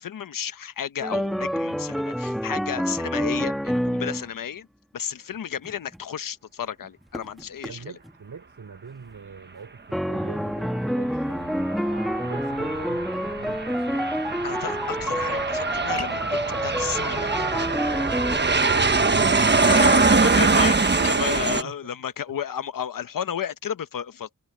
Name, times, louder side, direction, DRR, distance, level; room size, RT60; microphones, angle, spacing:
voice 1, 0.0-4.7 4.9-8.0 14.4-17.3 19.4-24.3, left 9 dB, 85° left, 1.0 m, -32 dB
sound 1, 1.0-4.3 5.6-6.0 7.1-7.7 8.0-8.1 9.9-18.4, equal, ahead, 1.6 m, -28 dB
voice 2, 7.6-11.8 12.2-14.1 18.7-19.6 20.9-21.8, right 5 dB, 70° right, 6.1 m, -40 dB
Aircraft, 11.4-21.6, right 4 dB, 35° right, 1.3 m, -23 dB
sound 2, 16.0-16.4 20.9-21.2, left 4 dB, 55° left, 5.4 m, -37 dB
wide cardioid pair, 75°, 32 cm